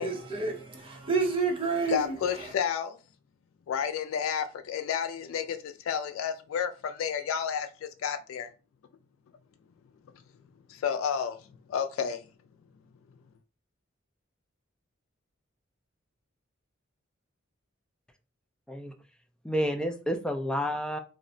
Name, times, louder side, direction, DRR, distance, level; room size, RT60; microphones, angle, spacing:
voice 1, 0.0-2.5, right 4 dB, 25° right, 0.7 m, -30 dB
voice 2, 1.9-3.0 3.7-8.5 10.7-11.4 11.7-12.2, left 7 dB, 85° left, 0.3 m, -31 dB
voice 3, 19.4-21.0, equal, 5° left, 0.3 m, -30 dB
2.3 x 2.1 x 3.7 m
head